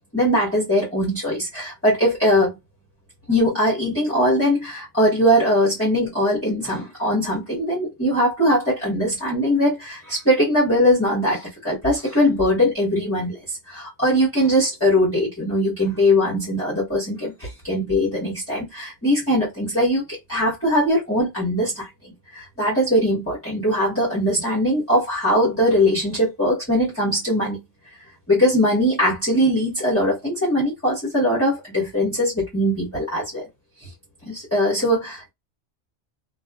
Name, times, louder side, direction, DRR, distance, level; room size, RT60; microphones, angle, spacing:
voice 1, 0.1-2.6 3.3-13.4 13.7-27.6 28.3-33.5 33.8-33.9 34.2-35.3, equal, 15° left, 1.0 m, -21 dB
2.5 x 2.3 x 2.3 m
omnidirectional pair, 1.2 m